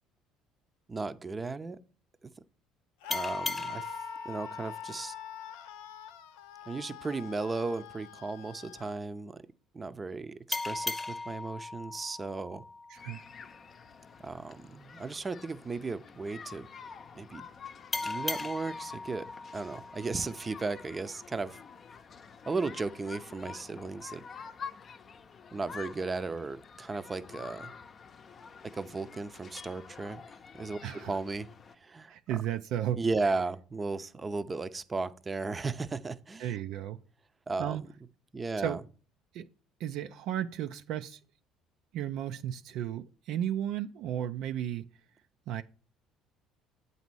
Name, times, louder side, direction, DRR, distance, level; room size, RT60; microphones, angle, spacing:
voice 1, 0.9-1.8 2.2-2.3 3.1-3.9 4.2-5.1 6.7-9.4 9.7-12.6 14.2-16.7 17.1-17.5 18.0-19.3 19.5-21.6 22.5-24.2 25.5-27.7 28.7-30.2 30.5-30.8 31.1-31.5 31.7-32.1 33.0-36.6 37.5-37.9 38.3-38.8, right 3 dB, 25° right, 0.6 m, -35 dB
Screaming, 3.0-9.0, left 8 dB, 85° left, 0.4 m, -45 dB
sound 1, 3.1-6.3 10.5-13.7 17.9-20.9, left 2 dB, 15° left, 1.0 m, -39 dB
sound 2, 12.9-31.7, left 6 dB, 40° left, 0.6 m, -48 dB
voice 2, 12.9-13.2 30.8-31.1 32.1-33.0 36.4-37.0 37.6-37.8 38.6-38.8 39.3-39.5 39.8-41.2 41.9-44.9 45.5-45.6, right 11 dB, 70° right, 0.4 m, -34 dB
8.0 x 4.1 x 6.1 m
supercardioid pair, 75°, 0 cm